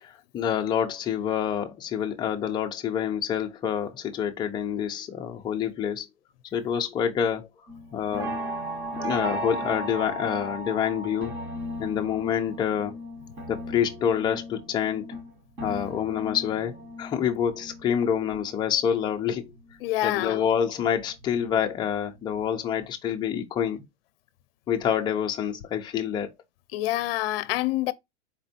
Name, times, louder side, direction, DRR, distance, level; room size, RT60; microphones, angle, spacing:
voice 1, 0.0-6.1 6.5-7.5 7.9-8.3 9.0-11.3 11.8-13.0 13.5-15.2 15.6-19.5 20.0-23.8 24.7-26.3, left 8 dB, 15° left, 0.5 m, -27 dB
sound 1, 7.7-19.8 20.2-21.8 22.2-22.5 22.8-22.9, right 1 dB, 30° right, 0.9 m, -37 dB
voice 2, 19.8-20.4 26.7-27.9, left 15 dB, 55° left, 0.6 m, -26 dB
4.4 x 3.0 x 2.7 m
supercardioid pair, 145°, 35 cm